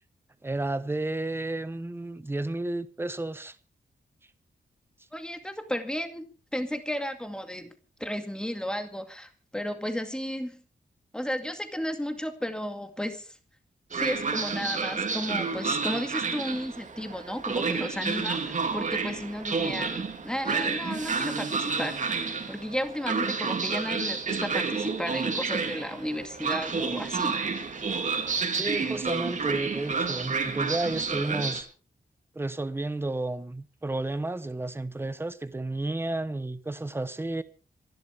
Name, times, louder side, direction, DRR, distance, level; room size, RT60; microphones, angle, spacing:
voice 1, 0.4-3.6 28.5-31.7 32.3-37.4, right 2 dB, 10° right, 1.0 m, -32 dB
voice 2, 5.1-7.7 8.0-10.6 11.1-13.4 13.9-22.1 22.5-27.4, equal, 5° left, 2.2 m, -34 dB
Train, 13.9-31.6, right 4 dB, 40° right, 2.7 m, -30 dB
26.0 x 12.0 x 3.5 m
wide cardioid pair, 175°, 18 cm